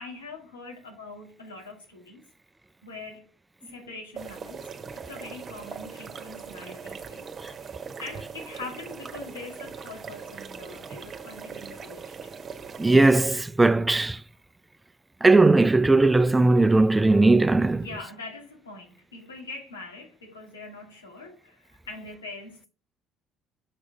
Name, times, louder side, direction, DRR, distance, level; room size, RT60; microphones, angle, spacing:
voice 1, 0.0-2.2 2.8-3.3 3.6-12.3 17.7-22.7, left 3 dB, 90° left, 2.2 m, -43 dB
sound 1, 4.1-13.2, right 6 dB, 40° right, 1.2 m, -40 dB
voice 2, 12.8-14.2 15.2-17.8, right 2 dB, 15° right, 0.5 m, -18 dB
6.6 x 6.3 x 3.4 m
hypercardioid pair, 55°, 0 cm